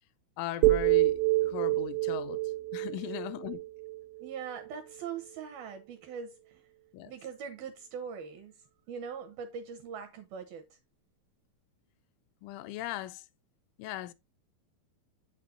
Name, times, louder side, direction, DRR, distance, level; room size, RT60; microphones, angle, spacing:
voice 1, 0.4-2.4 2.7-3.6 6.9-7.1 12.4-13.2 13.8-14.1, left 13 dB, 85° left, 3.1 m, -38 dB
sound 1, 0.6-4.7, right 18 dB, 90° right, 3.0 m, -28 dB
voice 2, 4.2-6.6 7.1-8.5 8.9-10.8, right 6 dB, 75° right, 2.3 m, -41 dB
8.5 x 8.3 x 2.6 m
omnidirectional pair, 5.3 m